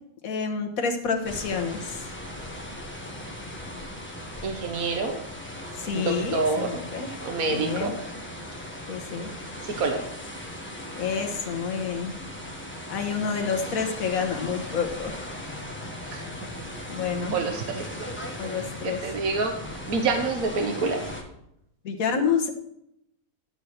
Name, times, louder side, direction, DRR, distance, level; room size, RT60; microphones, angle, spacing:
voice 1, 0.2-2.1 5.8-7.1 7.5-7.9 8.9-9.3 10.9-12.1 12.9-15.2 16.3-16.4 16.9-17.4 18.4-19.0 21.8-22.5, left 6 dB, 70° left, 3 dB, 1.6 m, -28 dB
sound 1, 1.2-21.2, left 1 dB, 10° left, 1.2 m, -38 dB
voice 2, 4.4-5.2 5.9-6.7 7.2-8.0 9.6-10.0 16.1-16.3 17.3-18.1 18.4-19.5 19.9-21.0, right 4 dB, 75° right, 4 dB, 1.5 m, -27 dB
12.0 x 4.4 x 6.6 m, 0.78 s
omnidirectional pair, 1.5 m